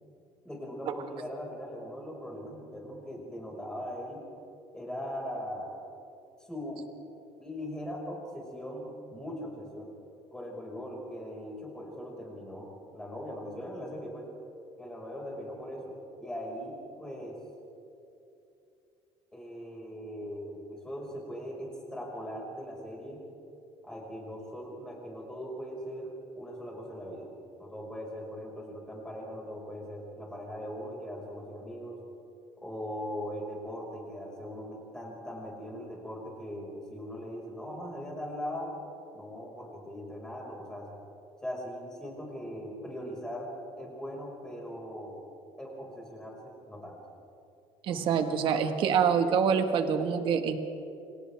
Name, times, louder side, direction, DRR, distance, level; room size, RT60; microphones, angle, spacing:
voice 1, 0.4-4.2 4.7-5.7 6.5-6.8 7.4-9.9 10.3-14.3 14.8-17.4 19.3-23.2 23.8-27.3 27.6-32.0 32.6-38.8 39.1-40.9 41.4-43.5 43.8-45.2 45.6-47.0 47.9-48.6, equal, 5° left, -3 dB, 5.9 m, -40 dB
voice 2, 47.9-50.6, right 7 dB, 50° right, 6 dB, 1.8 m, -26 dB
29.0 x 26.0 x 3.7 m, 2.8 s
cardioid pair, 160°, 11 cm